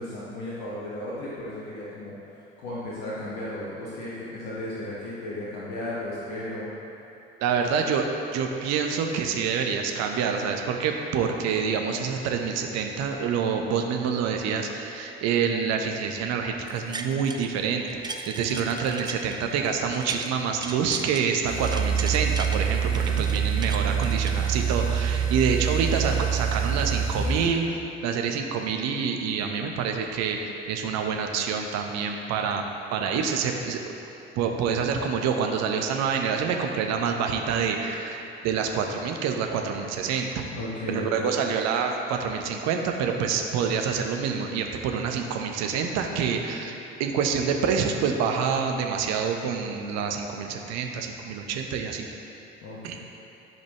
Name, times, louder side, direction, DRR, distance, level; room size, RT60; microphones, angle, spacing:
voice 1, 0.0-2.1 2.6-6.7 7.4-7.7 22.8-23.3 40.5-41.3 46.5-46.8 52.6-53.0, left 1 dB, 65° left, -7 dB, 1.4 m, -35 dB
voice 2, 7.4-8.1 8.3-27.6 28.0-30.4 30.7-32.6 32.9-33.8 34.4-40.5 40.9-52.1 52.8-53.0, right 6 dB, 60° right, 3 dB, 0.9 m, -27 dB
sound 1, 16.7-17.5 17.9-20.3 20.6-22.6 22.9-24.9 25.4-25.5, right 3 dB, 15° right, 0.6 m, -38 dB
sound 2, 21.4-27.5, right 7 dB, 85° right, 1.3 m, -26 dB
14.0 x 5.3 x 3.0 m, 2.9 s
figure-of-eight pair, 50°, 30 cm